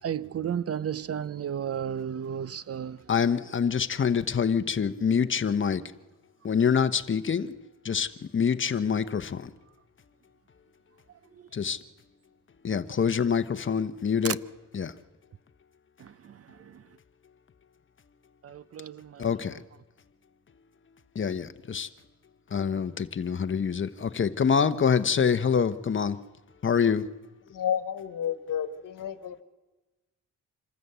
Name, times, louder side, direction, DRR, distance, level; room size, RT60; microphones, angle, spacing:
voice 1, 0.0-3.1 11.3-11.5 14.2-14.4 16.0-17.0 18.4-19.6, right 8 dB, 50° right, 0.6 m, -34 dB
voice 2, 3.1-5.8 6.4-7.5 7.8-9.5 11.5-11.8 12.6-14.4 14.7-14.9 19.2-19.6 21.1-21.9 22.5-26.2 26.6-27.1, left 6 dB, 40° left, 1.0 m, -26 dB
voice 3, 27.5-29.4, left 9 dB, 80° left, 1.4 m, -31 dB
26.0 x 13.5 x 8.1 m
cardioid pair, 85°, 32 cm